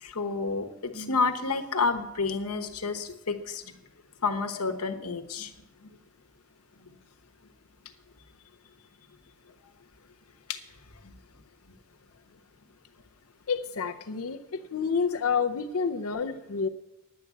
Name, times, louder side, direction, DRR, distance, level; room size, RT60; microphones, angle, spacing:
voice 1, 0.0-3.6 4.2-5.5 5.8-5.9 10.5-10.6 11.0-11.1, left 4 dB, 90° left, 7 dB, 1.2 m, -30 dB
voice 2, 13.5-16.7, left 5 dB, 70° left, 5 dB, 0.6 m, -29 dB
10.5 x 8.4 x 8.3 m, 0.96 s
head